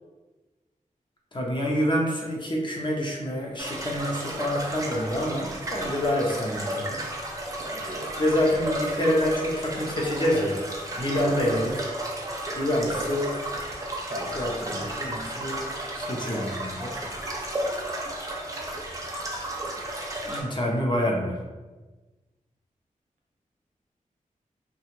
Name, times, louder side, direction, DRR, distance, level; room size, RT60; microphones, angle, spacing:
voice 1, 1.3-7.0 8.2-10.6 11.0-11.9 12.5-13.3 14.4-15.6 16.0-16.9 20.2-21.4, equal, 35° left, -2 dB, 0.6 m, -27 dB
sound 1, 3.6-20.4, right 1 dB, 25° right, 0.6 m, -33 dB
voice 2, 7.6-8.1 11.2-11.4 12.9-13.1 14.1-14.8, equal, 75° right, -2 dB, 0.8 m, -37 dB
2.9 x 2.3 x 2.9 m, 1.2 s
wide cardioid pair, 95°, 14 cm